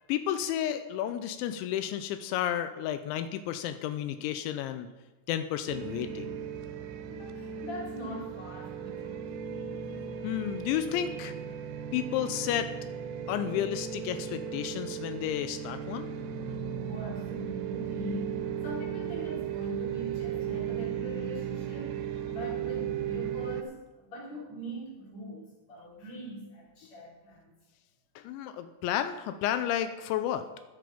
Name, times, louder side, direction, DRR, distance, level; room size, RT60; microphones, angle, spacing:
voice 1, 0.1-4.9 5.3-6.4 10.2-11.3 11.9-12.7 13.3-16.1 28.2-30.4, left 11 dB, 90° left, 9 dB, 2.7 m, -32 dB
sound 1, 5.7-23.6, right 8 dB, 75° right, 2.8 m, -36 dB
voice 2, 7.1-9.3 16.8-22.0 22.3-27.5, equal, 35° left, -2 dB, 4.4 m, -42 dB
12.5 x 11.5 x 5.3 m, 1.2 s
omnidirectional pair, 5.9 m